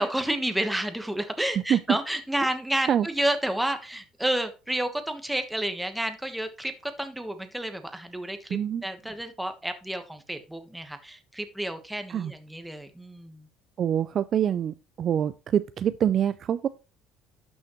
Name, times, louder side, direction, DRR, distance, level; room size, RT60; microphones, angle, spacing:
voice 1, 0.0-13.5, right 1 dB, 5° right, 1.2 m, -30 dB
voice 2, 8.5-8.8 12.1-12.3 13.8-16.7, right 9 dB, 45° right, 0.4 m, -25 dB
11.5 x 6.3 x 3.1 m
cardioid pair, 125°, 0 cm